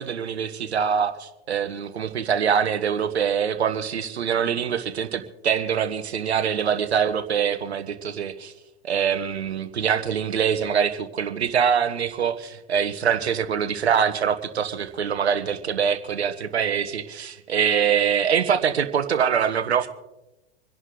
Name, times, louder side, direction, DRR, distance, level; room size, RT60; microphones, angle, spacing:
voice 1, 0.0-8.5 8.8-19.9, right 7 dB, 75° right, 8 dB, 1.4 m, -24 dB
27.0 x 11.0 x 3.9 m, 0.96 s
figure-of-eight pair, 95°, 32 cm